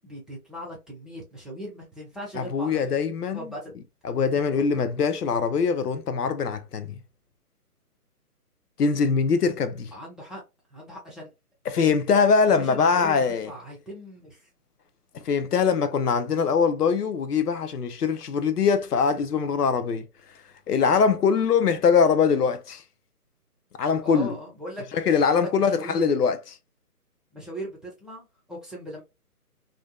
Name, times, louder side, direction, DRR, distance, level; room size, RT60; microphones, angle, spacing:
voice 1, 0.0-3.0 3.3-3.7 4.5-4.8 9.9-10.4 10.7-11.3 12.5-14.5 24.0-24.9 25.3-26.1 27.3-29.0, equal, ahead, 0.4 m, -39 dB
voice 2, 2.3-3.5 4.0-6.9 8.8-9.9 11.7-13.5 15.2-20.0 20.7-22.8 23.8-24.4 24.9-26.4, left 5 dB, 80° left, 0.6 m, -22 dB
2.5 x 2.2 x 2.2 m
hypercardioid pair, 175°, 46 cm